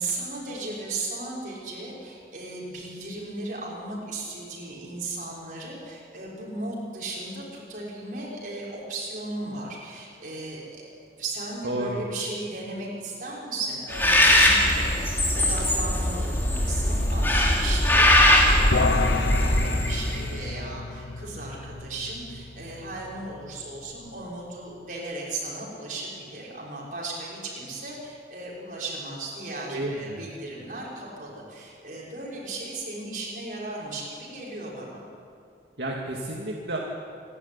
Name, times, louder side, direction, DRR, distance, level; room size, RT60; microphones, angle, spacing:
voice 1, 0.0-10.8 11.2-35.0, right 2 dB, 45° right, -5 dB, 6.5 m, -36 dB
voice 2, 11.6-12.0 29.7-30.3 35.8-36.8, right 1 dB, 65° right, -2 dB, 2.3 m, -31 dB
Bird, 13.9-20.3, left 1 dB, 10° left, 2.9 m, -21 dB
sound 1, 18.7-24.2, left 3 dB, 85° left, 1.0 m, -31 dB
27.5 x 12.5 x 9.9 m, 2.4 s
head